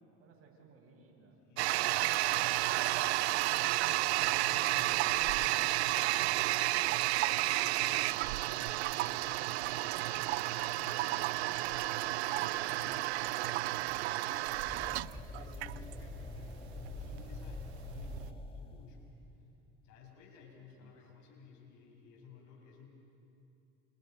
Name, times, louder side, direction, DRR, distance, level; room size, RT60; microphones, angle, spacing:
voice 1, 0.2-2.0 20.8-21.0, right 4 dB, 45° right, 0 dB, 7.1 m, -62 dB
voice 2, 1.4-2.6 3.3-7.0 7.4-11.4 11.8-14.5 15.3-19.1 19.8-22.9, left 5 dB, 65° left, 1 dB, 6.9 m, -56 dB
Toilet flush, 1.6-18.3, right 18 dB, 90° right, 0.5 m, -31 dB
sound 1, 14.7-19.8, left 3 dB, 15° left, 2.1 m, -45 dB
29.0 x 28.5 x 5.4 m, 2.8 s
hypercardioid pair, 85°, 32 cm